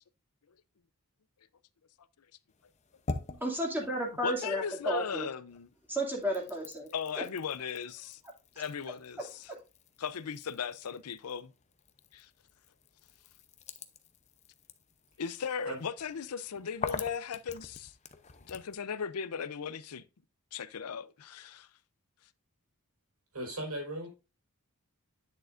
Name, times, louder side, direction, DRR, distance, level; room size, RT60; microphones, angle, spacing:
sound 1, 2.5-5.2 5.5-18.8, left 4 dB, 30° left, 0.7 m, -46 dB
voice 1, 3.4-5.3 5.9-6.9, right 1 dB, 10° right, 2.3 m, -32 dB
voice 2, 4.2-5.7 6.9-8.2 8.6-9.5 10.0-11.5 12.1-12.3 15.2-17.9 18.4-20.0 20.5-21.7, left 7 dB, 85° left, 0.6 m, -37 dB
voice 3, 23.3-24.1, right 1 dB, 80° right, 4.6 m, -37 dB
10.5 x 6.6 x 2.5 m
head